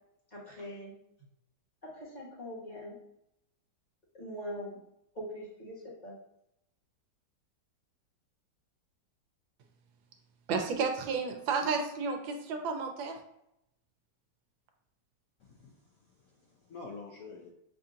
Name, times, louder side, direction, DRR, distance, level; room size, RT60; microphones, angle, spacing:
voice 1, 0.3-1.0 1.8-2.9 4.1-4.8 5.1-6.1, equal, 25° left, -6 dB, 1.5 m, -42 dB
voice 2, 10.5-13.2, right 5 dB, 85° right, 4 dB, 1.4 m, -32 dB
voice 3, 15.4-17.5, left 4 dB, 70° left, -1 dB, 0.8 m, -48 dB
6.8 x 2.7 x 2.5 m, 0.79 s
omnidirectional pair, 2.1 m